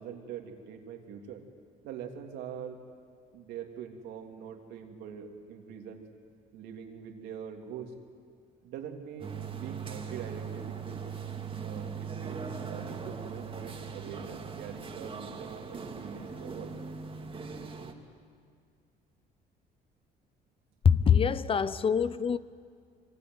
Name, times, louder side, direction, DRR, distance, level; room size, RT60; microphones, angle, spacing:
voice 1, 0.0-1.4 1.8-2.8 3.3-6.0 6.5-7.9 8.6-11.0 11.6-16.7, right 7 dB, 85° right, 3.2 m, -43 dB
sound 1, 9.2-17.9, right 6 dB, 30° right, 2.5 m, -40 dB
voice 2, 20.8-22.4, left 7 dB, 35° left, 0.7 m, -24 dB
24.5 x 24.5 x 9.6 m
cardioid pair, 110°, 17 cm